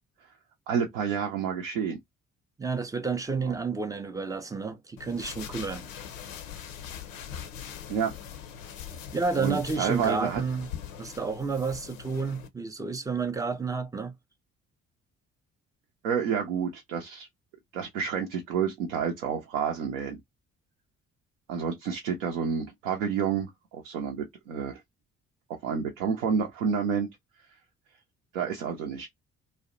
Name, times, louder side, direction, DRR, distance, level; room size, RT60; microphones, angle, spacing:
voice 1, 0.7-2.0 3.4-3.5 7.9-8.1 9.4-10.4 16.0-17.3 17.7-20.2 21.5-24.8 25.6-27.1 28.3-29.1, right 7 dB, 70° right, 0.6 m, -29 dB
voice 2, 2.6-5.9 9.1-10.7 11.0-14.1, right 4 dB, 10° right, 0.3 m, -30 dB
sound 1, 5.0-12.5, left 8 dB, 75° left, 0.5 m, -42 dB
2.6 x 2.1 x 2.5 m
figure-of-eight pair, 45°, 39 cm